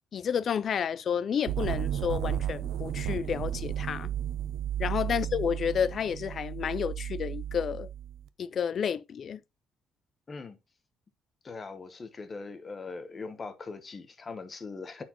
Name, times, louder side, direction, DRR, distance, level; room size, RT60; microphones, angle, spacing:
voice 1, 0.0-4.1 4.8-7.9 8.4-9.4, left 7 dB, 45° left, 0.4 m, -30 dB
sound 1, 1.5-8.2, right 11 dB, 80° right, 0.4 m, -33 dB
voice 2, 11.4-15.0, left 4 dB, 25° left, 0.9 m, -41 dB
9.8 x 4.4 x 2.9 m
cardioid pair, 130°, 0 cm